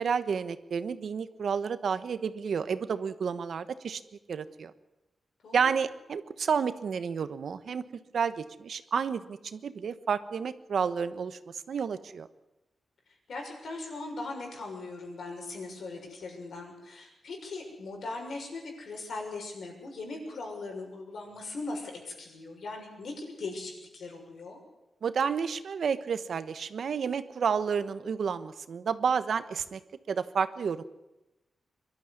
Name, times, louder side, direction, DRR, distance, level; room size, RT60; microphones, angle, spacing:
voice 1, 0.0-4.0 4.3-4.7 5.5-7.8 8.1-11.4 11.7-12.3 25.0-29.8 30.1-30.8, right 6 dB, 70° right, 12 dB, 1.1 m, -30 dB
voice 2, 5.4-5.7 13.3-24.6, left 3 dB, 75° left, 2 dB, 6.6 m, -39 dB
23.0 x 12.5 x 9.7 m, 1.0 s
wide cardioid pair, 115°, 0 cm